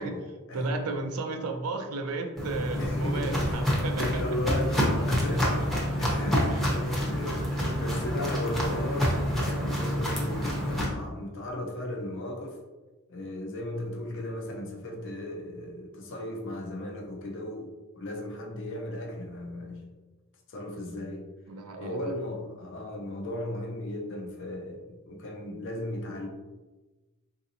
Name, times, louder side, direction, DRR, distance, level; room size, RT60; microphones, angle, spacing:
voice 1, 0.0-0.7 2.8-7.5 7.8-12.6 13.1-20.0 20.5-21.3 21.8-26.3, left 1 dB, 60° left, 2 dB, 0.6 m, -36 dB
voice 2, 0.5-4.2 5.3-5.5 6.5-6.8 21.5-22.1, right 3 dB, 85° right, 5 dB, 0.5 m, -34 dB
Walk footsteps, 2.4-10.8, equal, ahead, 0.8 m, -28 dB
3.8 x 2.7 x 2.7 m, 1.2 s
head